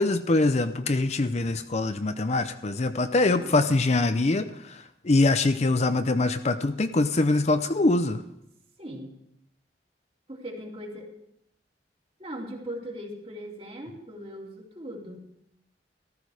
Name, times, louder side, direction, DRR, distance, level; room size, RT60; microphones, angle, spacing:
voice 1, 0.0-8.2, left 2 dB, 40° left, 10 dB, 0.6 m, -24 dB
voice 2, 3.2-3.6 8.8-9.1 10.3-11.1 12.2-15.3, equal, 35° right, 0 dB, 2.8 m, -39 dB
14.5 x 13.5 x 4.8 m, 0.77 s
head